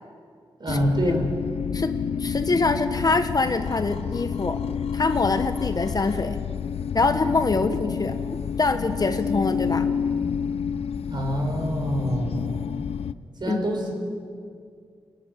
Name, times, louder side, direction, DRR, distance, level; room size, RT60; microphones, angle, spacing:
voice 1, 0.6-1.3 11.1-12.6 13.4-13.9, right 1 dB, 50° right, 1 dB, 5.4 m, -26 dB
sound 1, 0.7-13.1, left 7 dB, 85° left, 0.5 m, -29 dB
voice 2, 2.2-4.6 4.9-6.4 6.9-8.2 8.6-9.9 13.5-13.6, left 3 dB, 40° left, 8 dB, 1.1 m, -24 dB
26.5 x 12.5 x 9.4 m, 2.2 s
wide cardioid pair, 90°, 10 cm